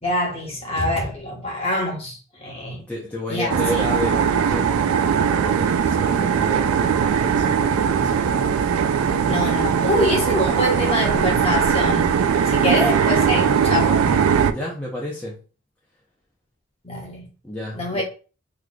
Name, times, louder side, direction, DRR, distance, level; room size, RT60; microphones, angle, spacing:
voice 1, 0.0-2.8 3.3-3.9 9.3-14.3 16.8-17.3 17.7-18.0, left 1 dB, 30° left, 1.0 m, -25 dB
voice 2, 2.9-8.3 9.0-9.4 12.3-12.9 14.4-15.4 17.4-18.0, left 1 dB, 5° left, 0.5 m, -32 dB
sound 1, 3.5-14.5, right 7 dB, 85° right, 0.3 m, -20 dB
3.9 x 3.1 x 2.2 m
head